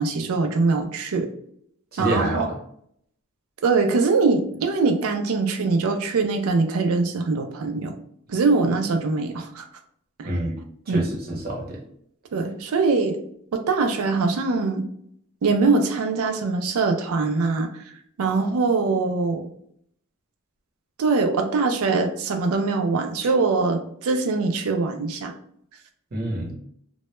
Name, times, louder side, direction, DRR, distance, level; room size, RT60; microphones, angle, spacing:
voice 1, 0.0-1.3 2.0-2.5 3.6-7.9 8.3-9.7 10.2-10.4 10.9-11.0 12.3-13.2 13.5-14.9 15.4-17.8 18.2-19.5 21.0-25.3, right 4 dB, 70° right, 6 dB, 0.4 m, -22 dB
voice 2, 1.9-2.6 10.2-10.6 10.9-11.8 26.1-26.5, right 1 dB, 45° right, -2 dB, 0.7 m, -27 dB
2.2 x 2.1 x 2.9 m, 0.68 s
head